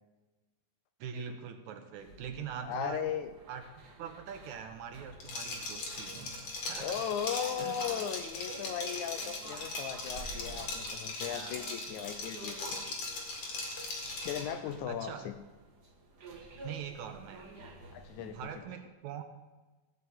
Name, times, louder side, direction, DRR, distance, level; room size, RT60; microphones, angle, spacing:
voice 1, 1.0-3.1 3.5-3.6 4.0-6.2 6.6-7.0 7.6-7.8 11.3-11.7 14.9-15.3 16.6-17.6 18.2-19.2, right 7 dB, 70° right, 6 dB, 2.1 m, -43 dB
sound 1, 2.0-18.6, right 3 dB, 45° right, 1.3 m, -51 dB
voice 2, 2.6-3.3 6.8-12.8 14.2-15.3 17.9-18.4, left 8 dB, 75° left, 9 dB, 1.9 m, -37 dB
Liquid, 5.2-14.5, left 3 dB, 55° left, 3.0 m, -39 dB
16.5 x 5.6 x 7.8 m, 1.2 s
omnidirectional pair, 3.8 m